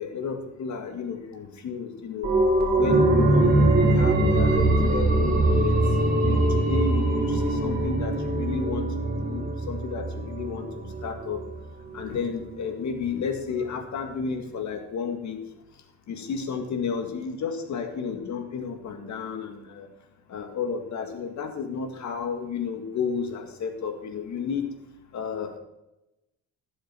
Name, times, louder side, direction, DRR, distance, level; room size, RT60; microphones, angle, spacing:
voice 1, 0.0-2.3 2.8-5.8 6.2-11.4 11.9-15.4 16.1-19.9 20.3-24.7 25.1-25.6, left 5 dB, 70° left, 6 dB, 2.0 m, -32 dB
sound 1, 2.2-11.6 11.9-12.0, right 2 dB, 30° right, 3.5 m, -22 dB
17.0 x 7.3 x 4.4 m, 0.93 s
cardioid pair, 90°, 30 cm